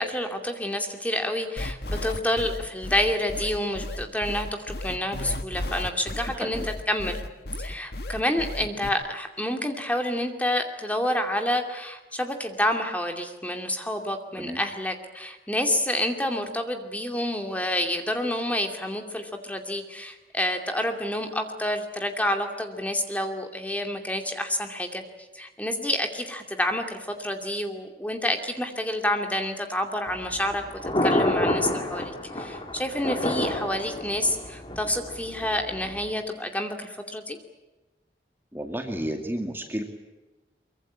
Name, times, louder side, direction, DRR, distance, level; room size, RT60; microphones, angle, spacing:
voice 1, 0.0-6.6 6.9-7.2 7.6-25.0 25.3-37.4, left 1 dB, 10° left, 5 dB, 2.5 m, -28 dB
sound 1, 1.6-8.9, left 1 dB, 65° left, 1.6 m, -33 dB
voice 2, 6.3-6.7 14.4-14.6 38.5-39.8, right 1 dB, 15° right, 4 dB, 2.2 m, -32 dB
Thunder, 30.1-36.1, left 1 dB, 25° left, 2.7 m, -29 dB
24.0 x 24.0 x 8.8 m, 1.1 s
head